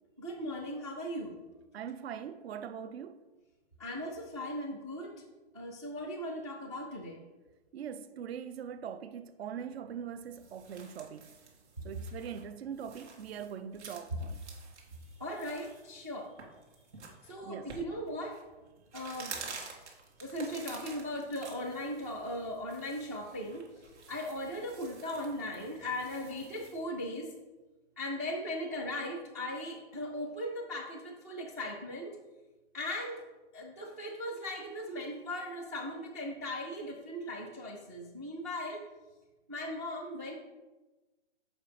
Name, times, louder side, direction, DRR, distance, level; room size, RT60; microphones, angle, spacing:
voice 1, 0.2-1.4 3.8-5.2 5.5-7.2 15.2-16.3 17.2-18.4 18.9-19.3 20.2-23.6 24.1-27.3 28.0-32.2 32.7-33.2 33.5-38.8 39.5-40.3, left 1 dB, 15° right, 0.3 m, -38 dB
voice 2, 1.7-3.2 7.7-11.4 11.8-14.4 17.4-17.8, right 8 dB, 65° right, 0.6 m, -42 dB
sound 1, 10.1-26.8, right 4 dB, 80° right, 2.2 m, -50 dB
7.3 x 5.2 x 4.9 m
hypercardioid pair, 160°, 34 cm